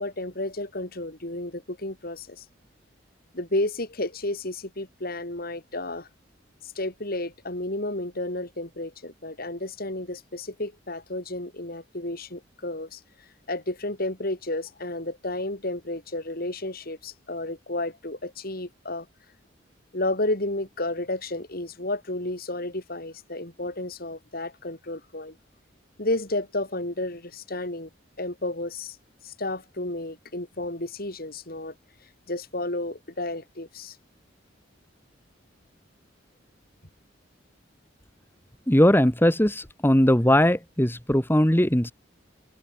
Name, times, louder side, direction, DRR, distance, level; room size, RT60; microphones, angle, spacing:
voice 1, 0.0-2.4 3.3-6.1 6.6-13.0 13.5-19.1 19.9-25.4 26.0-27.9 28.2-29.0 29.2-31.7 32.3-34.0, left 2 dB, 55° left, 5.0 m, -32 dB
voice 2, 38.7-41.9, left 1 dB, 10° left, 2.0 m, -20 dB
open air
head